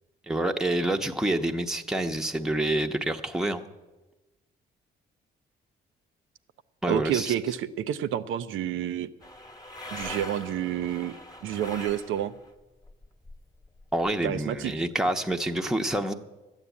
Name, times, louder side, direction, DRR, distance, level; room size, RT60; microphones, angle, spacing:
voice 1, 0.3-3.6 6.8-7.3 13.9-16.1, right 1 dB, 5° right, 4 dB, 0.8 m, -27 dB
voice 2, 6.9-9.1 9.9-11.1 11.4-12.3 14.2-14.7, right 10 dB, 85° right, 12 dB, 0.7 m, -29 dB
sound 1, 9.2-12.5 12.8-14.1, left 1 dB, 20° left, 1.1 m, -42 dB
12.5 x 9.0 x 8.4 m, 1.1 s
cardioid pair, 90°, 20 cm